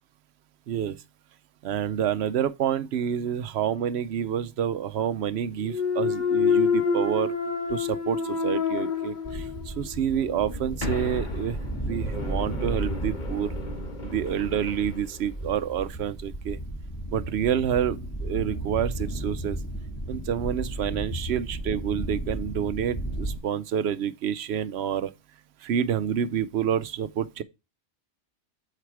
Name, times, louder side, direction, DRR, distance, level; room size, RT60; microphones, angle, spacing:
voice 1, 0.7-1.0 1.6-7.3 7.7-11.6 11.9-13.5 14.0-16.6 17.1-19.6 20.1-25.1 25.6-27.4, right 9 dB, 65° right, 0.9 m, -28 dB
Thump thud, 5.6-9.7 10.1-14.8, left 5 dB, 40° left, 1.4 m, -28 dB
sound 1, 9.2-23.4, right 1 dB, 15° left, 1.6 m, -34 dB
8.2 x 4.9 x 4.6 m
omnidirectional pair, 1.2 m